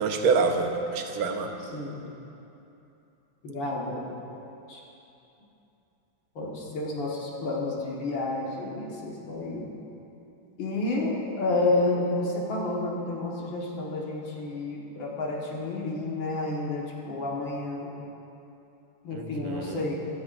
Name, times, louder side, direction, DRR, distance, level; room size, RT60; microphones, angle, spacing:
voice 1, 0.0-1.5 19.1-19.8, right 4 dB, 85° right, 4 dB, 1.7 m, -26 dB
voice 2, 3.4-4.0 4.7-4.8 6.4-9.7 10.6-17.9 19.0-20.0, left 2 dB, 70° left, -3 dB, 2.3 m, -30 dB
16.5 x 12.5 x 2.6 m, 2.9 s
omnidirectional pair, 2.2 m